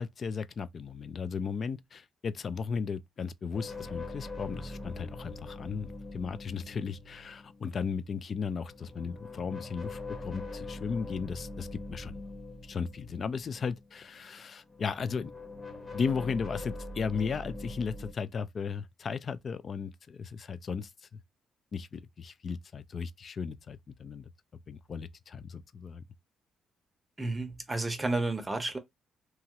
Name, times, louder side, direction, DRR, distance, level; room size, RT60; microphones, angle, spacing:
voice 1, 0.0-12.2 12.6-15.3 15.9-21.2 21.7-24.3 24.7-26.0, left 5 dB, 45° left, 0.3 m, -36 dB
sound 1, 3.5-7.7 8.5-14.3 14.6-18.1, left 2 dB, 20° left, 1.0 m, -43 dB
voice 2, 27.2-28.8, right 2 dB, 20° right, 0.7 m, -31 dB
2.9 x 2.4 x 2.8 m
cardioid pair, 90°, 0 cm